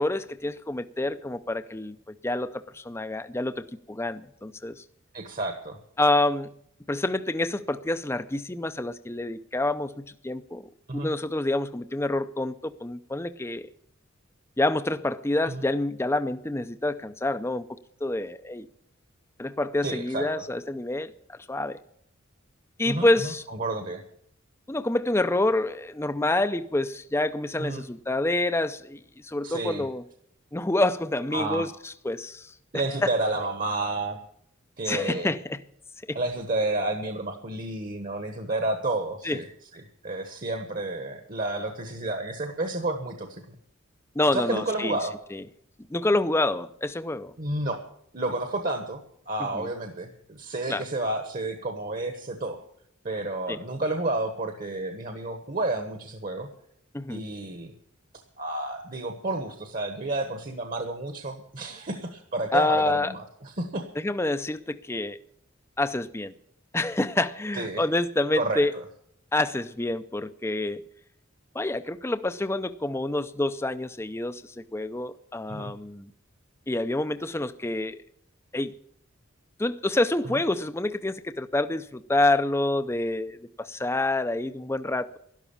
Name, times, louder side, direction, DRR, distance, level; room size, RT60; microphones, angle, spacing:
voice 1, 0.0-4.8 6.0-6.5 6.9-10.6 10.9-13.7 14.6-17.6 18.0-18.7 19.4-21.8 22.8-23.4 24.7-30.0 30.5-32.5 33.0-33.1 34.8-35.6 36.1-36.2 39.2-39.4 44.2-45.0 45.3-45.4 45.9-47.3 49.5-49.7 50.7-50.8 53.5-53.6 56.9-57.2 62.5-63.1 64.0-65.2 65.8-66.3 66.7-68.7 69.3-70.8 71.5-76.1 76.7-78.0 78.5-78.7 79.6-85.2, left 2 dB, 10° left, 11 dB, 0.5 m, -27 dB
voice 2, 5.1-5.8 10.9-11.1 15.5-15.6 19.8-20.4 22.8-24.0 27.6-27.9 29.4-29.8 31.3-31.7 32.7-34.2 34.8-35.3 36.1-39.5 39.7-43.4 44.3-45.1 47.4-47.8 48.1-52.6 53.0-56.5 57.1-57.7 58.4-63.9 67.5-67.8 68.4-68.8 75.5-75.7 80.2-80.4, right 2 dB, 40° right, 6 dB, 1.3 m, -31 dB
12.0 x 12.0 x 7.1 m, 0.68 s
head